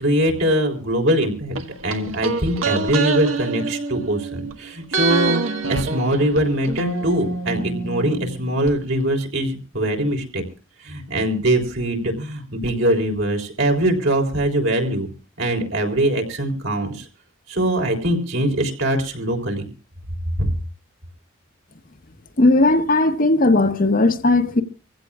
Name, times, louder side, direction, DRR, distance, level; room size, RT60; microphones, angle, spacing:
voice 1, 0.0-1.5 1.8-5.4 5.7-10.4 10.8-15.1 15.4-17.1 17.5-19.6 20.4-20.5, right 1 dB, 70° right, 3.7 m, -22 dB
sound 1, 1.6-4.5 4.9-8.7 9.0-9.1, right 4 dB, 90° right, 1.6 m, -26 dB
voice 2, 22.4-24.6, left 2 dB, 45° left, 1.0 m, -17 dB
25.5 x 16.0 x 2.4 m
head